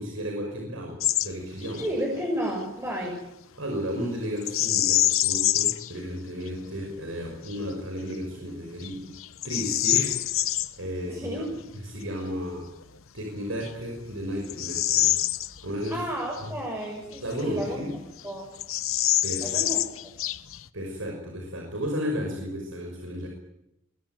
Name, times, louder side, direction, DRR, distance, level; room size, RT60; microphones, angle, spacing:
voice 1, 0.0-1.9 3.6-9.1 9.4-11.4 11.8-12.7 13.1-15.1 15.6-16.1 17.2-17.9 19.2-19.6 20.7-23.3, equal, 75° right, 1 dB, 5.8 m, -33 dB
Bird vocalization bird call bird song, 1.0-1.3 1.6-1.9 4.4-5.9 6.5-6.6 7.2-7.6 8.1-8.3 8.8-10.7 12.8-12.9 13.6-16.0 16.3-16.4 17.1-17.9 18.2-18.3 18.6-20.7, left 14 dB, 85° left, 1.0 m, -26 dB
voice 2, 1.8-3.2 11.0-11.5 15.9-17.8 18.2-18.5 19.4-19.8, right 1 dB, 15° right, -1 dB, 6.0 m, -31 dB
23.5 x 21.5 x 9.3 m, 0.84 s
head